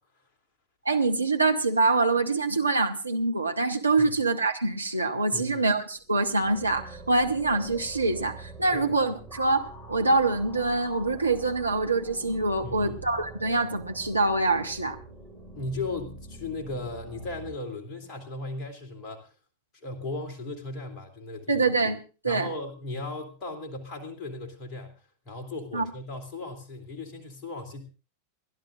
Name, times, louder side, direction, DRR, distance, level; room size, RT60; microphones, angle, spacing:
voice 1, 0.8-15.0 21.5-22.0 22.2-22.5 25.7-25.9, right 3 dB, 80° right, 4 dB, 1.1 m, -25 dB
voice 2, 5.3-5.7 8.7-8.9 12.6-13.0 15.5-19.3 19.8-21.7 22.2-24.9 25.2-27.8, left 2 dB, 35° left, 3 dB, 2.8 m, -36 dB
sound 1, 5.9-17.5, right 2 dB, 5° left, 5.0 m, -45 dB
29.0 x 11.5 x 2.5 m, 0.33 s
figure-of-eight pair, 90°, 0 cm